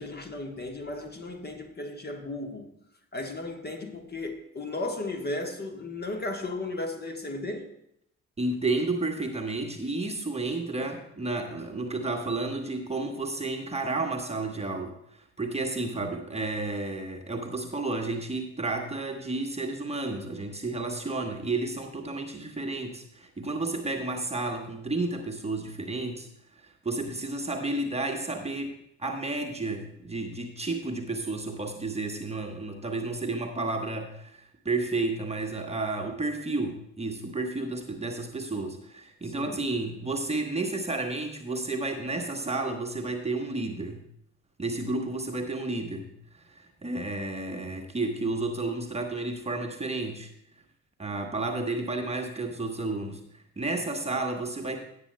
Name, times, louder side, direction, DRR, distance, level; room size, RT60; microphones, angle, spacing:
voice 1, 0.0-2.7 3.1-7.7 39.2-39.6, left 2 dB, 25° left, 1.3 m, -35 dB
voice 2, 8.4-26.3 26.6-44.0 44.6-46.1 46.5-50.3 51.0-53.2 53.6-54.8, right 2 dB, 15° right, 1.2 m, -31 dB
17.0 x 8.5 x 2.2 m
figure-of-eight pair, 50°, 39 cm